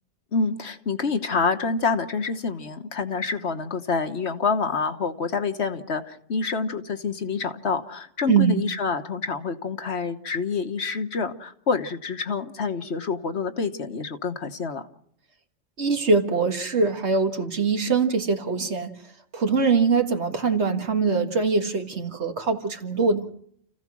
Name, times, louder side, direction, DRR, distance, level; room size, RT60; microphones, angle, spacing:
voice 1, 0.3-14.9, left 4 dB, 60° left, 8 dB, 1.5 m, -27 dB
voice 2, 8.2-8.6 15.8-18.9 19.3-23.2, right 4 dB, 65° right, 5 dB, 2.0 m, -23 dB
30.0 x 15.5 x 6.1 m, 0.67 s
omnidirectional pair, 1.3 m